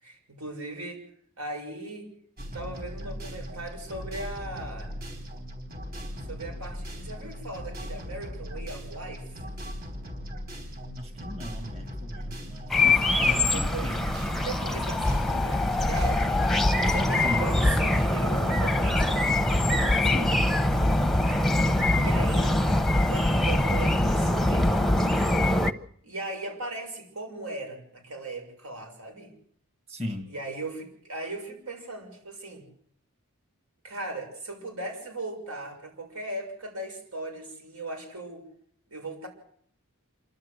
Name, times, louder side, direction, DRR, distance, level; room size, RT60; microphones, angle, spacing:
voice 1, 0.0-1.1 1.4-2.1 2.5-4.9 6.3-9.3 13.1-13.9 14.4-16.2 16.8-20.3 22.0-22.6 23.0-24.8 26.0-29.3 30.3-32.6 33.8-38.5 38.9-39.3, right 2 dB, 85° right, 3 dB, 6.8 m, -38 dB
sound 1, 2.4-17.7, equal, 45° right, 4.4 m, -38 dB
voice 2, 11.0-14.1 17.2-17.5 20.0-20.4 29.9-30.3, left 1 dB, 30° right, 6 dB, 1.6 m, -37 dB
sound 2, 12.7-25.7, left 1 dB, ahead, 0.8 m, -23 dB
27.5 x 12.5 x 8.0 m, 0.64 s
head